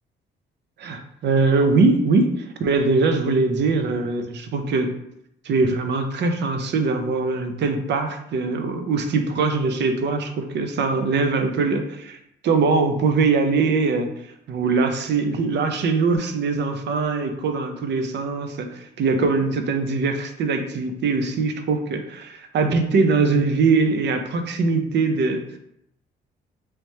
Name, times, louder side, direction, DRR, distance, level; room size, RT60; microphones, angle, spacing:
voice 1, 0.8-4.9 5.4-12.2 12.4-14.1 14.5-25.4, right 4 dB, 60° right, 7 dB, 0.6 m, -22 dB
3.1 x 3.0 x 3.2 m, 0.77 s
cardioid pair, 90°, 20 cm